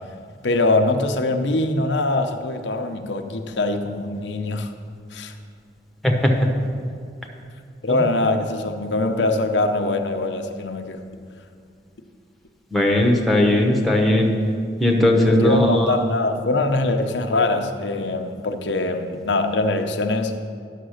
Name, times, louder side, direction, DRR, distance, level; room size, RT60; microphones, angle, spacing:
voice 1, 0.4-4.7 5.1-5.3 7.8-11.0 15.2-20.3, left 2 dB, 80° left, 5 dB, 0.7 m, -23 dB
voice 2, 6.0-6.5 12.7-14.4 14.8-15.9, left 1 dB, ahead, 1 dB, 1.0 m, -18 dB
10.0 x 6.5 x 6.4 m, 2.3 s
head